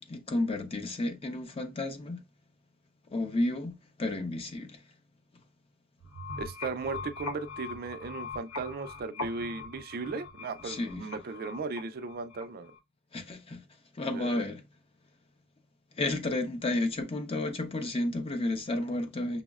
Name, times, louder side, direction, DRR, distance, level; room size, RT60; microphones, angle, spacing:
voice 1, 0.1-2.2 3.1-4.8 10.6-11.1 13.1-13.6 13.9-14.6 16.0-19.4, left 2 dB, 25° left, 0.5 m, -32 dB
sound 1, 6.0-12.8, left 3 dB, 80° left, 1.1 m, -41 dB
voice 2, 6.4-12.7 14.1-14.4, right 4 dB, 45° right, 0.3 m, -37 dB
6.0 x 2.0 x 2.3 m
head